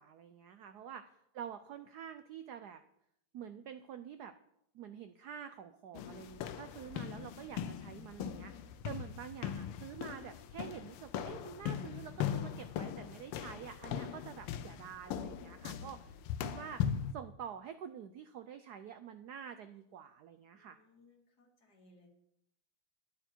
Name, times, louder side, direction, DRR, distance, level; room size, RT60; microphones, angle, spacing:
voice 1, 0.0-2.8 3.3-4.3 4.7-16.8 17.1-20.8, right 8 dB, 80° right, 10 dB, 0.9 m, -48 dB
sound 1, 5.9-17.1, left 9 dB, 85° left, 1.6 m, -40 dB
voice 2, 20.5-22.1, left 2 dB, 45° left, 1 dB, 2.8 m, -65 dB
13.0 x 10.5 x 4.5 m, 0.76 s
omnidirectional pair, 2.4 m